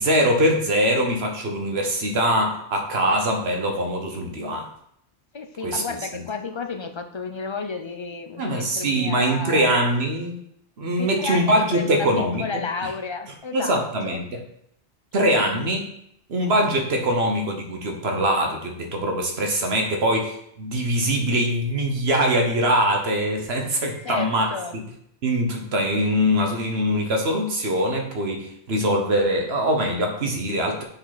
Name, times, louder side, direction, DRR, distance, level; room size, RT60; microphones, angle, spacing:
voice 1, 0.0-4.7 5.6-5.8 8.4-10.4 10.8-12.9 13.5-14.3 15.1-15.9 16.3-24.8 25.2-30.8, right 1 dB, 70° right, 2 dB, 1.3 m, -23 dB
voice 2, 5.3-9.8 11.0-13.8 14.0-14.2 15.4-15.5 24.0-24.7, left 4 dB, 35° left, 7 dB, 0.5 m, -32 dB
6.6 x 5.6 x 4.1 m, 0.72 s
omnidirectional pair, 1.1 m